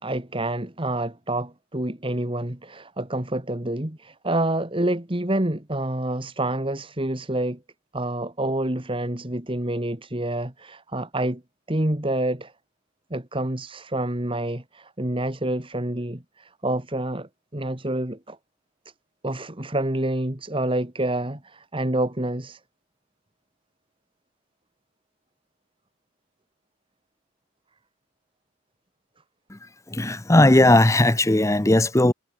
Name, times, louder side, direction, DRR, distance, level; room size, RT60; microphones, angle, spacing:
voice 1, 0.0-7.6 7.9-11.4 11.7-12.5 13.1-18.4 19.2-22.6, right 1 dB, 25° right, 2.1 m, -27 dB
voice 2, 29.9-32.1, left 1 dB, 15° left, 0.9 m, -17 dB
head